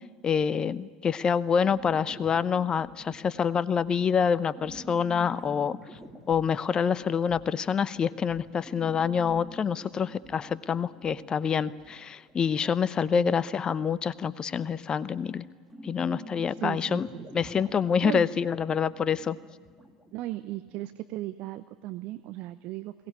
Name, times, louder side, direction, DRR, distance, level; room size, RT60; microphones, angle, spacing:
voice 1, 0.2-5.8 6.3-15.5 15.8-17.1 17.3-19.4, left 7 dB, 30° left, 17 dB, 0.8 m, -26 dB
sound 1, 1.7-20.9, equal, 5° right, 2.9 m, -49 dB
voice 2, 16.5-17.4 18.0-18.2 20.1-22.9, right 16 dB, 50° right, 12 dB, 0.8 m, -36 dB
22.0 x 18.5 x 9.7 m, 1.5 s
figure-of-eight pair, 75°, 3 cm